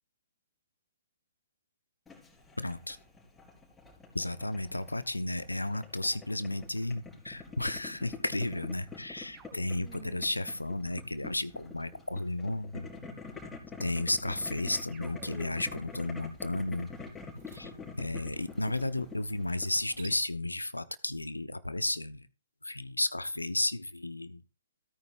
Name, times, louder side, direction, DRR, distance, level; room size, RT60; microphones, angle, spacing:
Boiling, 2.1-20.1, left 4 dB, 10° left, 4.0 m, -46 dB
voice 1, 2.6-3.0 4.1-12.9 13.8-16.9 17.5-17.7 18.0-22.3 22.6-24.4, left 2 dB, 85° left, 15 dB, 0.8 m, -33 dB
sound 1, 9.3-11.8 14.9-15.9, right 7 dB, 20° right, 2.2 m, -54 dB
sound 2, 15.0-20.1, right 3 dB, 45° right, 4.4 m, -58 dB
16.5 x 9.4 x 2.5 m, 0.33 s
figure-of-eight pair, 125°, 0 cm